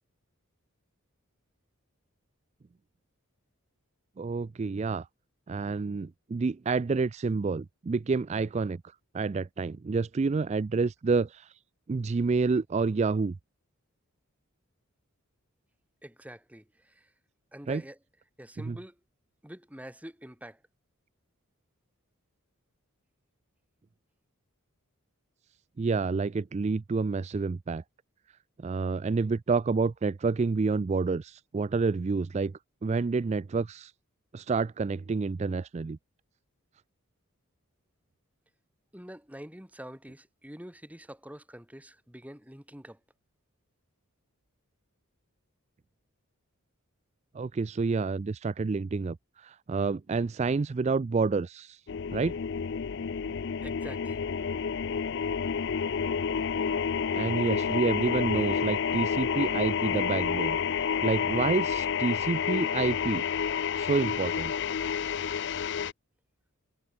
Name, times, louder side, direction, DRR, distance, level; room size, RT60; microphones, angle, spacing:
voice 1, 4.2-5.1 5.5-8.8 9.1-11.5 11.9-13.3 17.7-17.8 18.6-18.8 25.8-27.8 28.6-32.5 32.8-33.9 34.3-36.0 47.3-51.8 52.1-52.4 57.1-60.6 61.0-63.2 63.8-64.5, right 4 dB, 30° right, 0.3 m, -28 dB
voice 2, 16.0-17.1 17.5-18.0 18.4-19.0 19.4-20.6 38.9-43.0 53.6-54.3, equal, 5° right, 2.1 m, -46 dB
sound 1, 51.9-65.9, left 7 dB, 55° left, 0.4 m, -29 dB
head